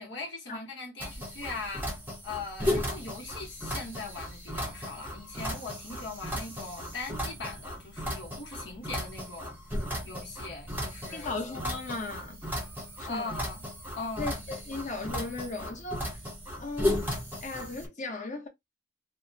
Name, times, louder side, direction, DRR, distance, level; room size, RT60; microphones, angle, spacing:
voice 1, 0.0-1.9 2.2-9.5 10.0-11.4 13.0-13.6 14.0-14.4, left 3 dB, 85° left, 1.0 m, -40 dB
sound 1, 1.0-17.9, left 1 dB, 10° right, 0.7 m, -35 dB
voice 2, 11.1-12.5 13.0-13.3 14.2-16.1 16.6-17.0 17.4-18.5, left 3 dB, 45° left, 0.8 m, -36 dB
2.7 x 2.0 x 2.6 m
head